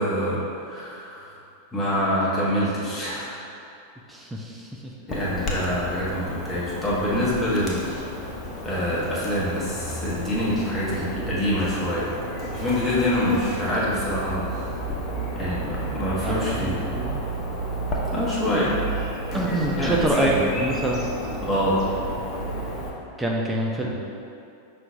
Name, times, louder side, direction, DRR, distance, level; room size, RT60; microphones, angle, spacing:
voice 1, 0.0-1.4 1.7-3.4 5.1-8.2 8.6-12.1 12.5-14.7 15.3-16.7 18.1-18.8 19.7-20.4 21.4-21.8 23.8-23.9, equal, 10° left, -8 dB, 1.1 m, -26 dB
voice 2, 4.1-4.9 16.2-17.2 19.3-21.1 23.2-23.9, right 1 dB, 10° right, -2 dB, 0.5 m, -26 dB
Chirp tweet / Buzz, 5.1-22.9, right 1 dB, 35° left, 0.7 m, -31 dB
5.6 x 3.5 x 2.6 m, 2.6 s
figure-of-eight pair, 90°, 0 cm